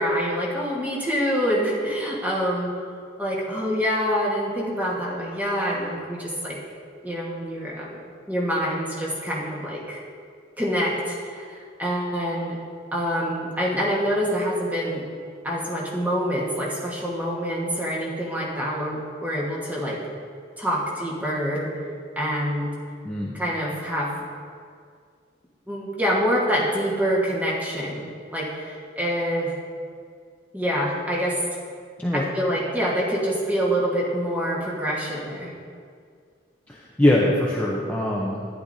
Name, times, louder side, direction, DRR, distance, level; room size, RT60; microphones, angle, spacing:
voice 1, 0.0-2.7 3.2-6.6 7.0-8.0 8.3-10.0 10.6-12.6 12.9-15.0 15.4-20.0 20.6-21.7 22.1-22.7 23.3-24.1 25.7-29.6 30.5-31.4 32.1-35.5, equal, 10° right, -4 dB, 1.3 m, -26 dB
voice 2, 36.7-38.5, left 1 dB, 10° left, -5 dB, 0.7 m, -22 dB
11.5 x 10.0 x 2.7 m, 2.2 s
head